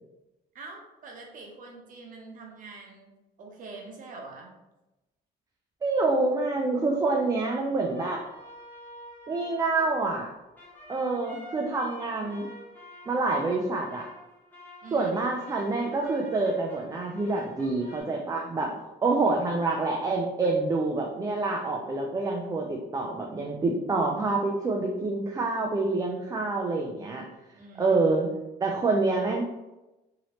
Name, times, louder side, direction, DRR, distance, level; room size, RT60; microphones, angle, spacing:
voice 1, 0.5-3.1 3.4-4.5 14.8-15.3 27.5-28.1, right 3 dB, 50° right, 0 dB, 0.9 m, -44 dB
voice 2, 5.8-8.2 9.3-10.3 10.9-12.5 13.1-14.1 14.9-27.2 27.8-28.3 28.6-29.4, right 3 dB, 20° right, 0 dB, 0.4 m, -27 dB
sound 1, 7.8-18.0, left 1 dB, 10° left, 1.0 m, -48 dB
3.0 x 2.8 x 2.9 m, 1.0 s
cardioid pair, 110°, 17 cm